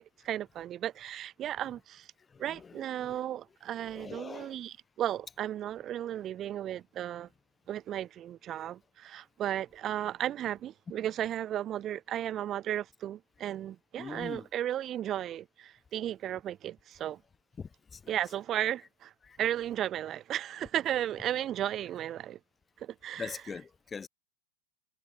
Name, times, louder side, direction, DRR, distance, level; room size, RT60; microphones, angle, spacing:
voice 1, 0.0-2.1 2.4-7.3 7.7-17.2 18.1-19.1 19.4-22.4 22.8-23.4, right 11 dB, 30° right, 0.8 m, -35 dB
voice 2, 3.9-4.5 14.0-14.5 17.6-18.0 19.2-19.4 23.2-24.1, left 5 dB, 15° left, 0.6 m, -41 dB
figure-of-eight pair, 90°, 0 cm